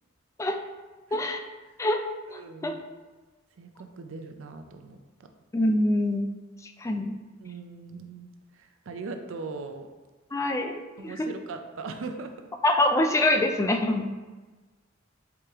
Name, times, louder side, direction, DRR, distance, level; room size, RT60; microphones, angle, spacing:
voice 1, 1.1-1.4 1.8-2.0 2.3-2.7 5.5-6.3 6.6-7.1 10.3-10.7 11.0-11.3 12.6-14.1, left 1 dB, 15° left, 5 dB, 0.3 m, -25 dB
voice 2, 2.3-2.8 3.6-5.3 7.4-9.9 11.0-12.4, right 3 dB, 70° right, 6 dB, 0.4 m, -40 dB
4.8 x 3.0 x 3.5 m, 1.3 s
head